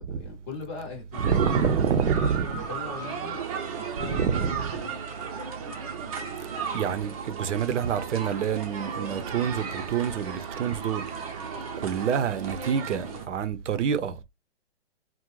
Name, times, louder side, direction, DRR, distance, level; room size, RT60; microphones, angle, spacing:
voice 1, 0.0-1.8 2.5-5.0 13.0-13.3, left 5 dB, 15° left, 0.5 m, -41 dB
sound 1, 1.1-13.3, right 6 dB, 30° right, 0.5 m, -35 dB
voice 2, 1.2-2.5 4.0-4.6 6.7-11.1 11.8-14.2, right 7 dB, 80° right, 0.6 m, -27 dB
2.4 x 2.1 x 3.0 m
hypercardioid pair, 140°, 35 cm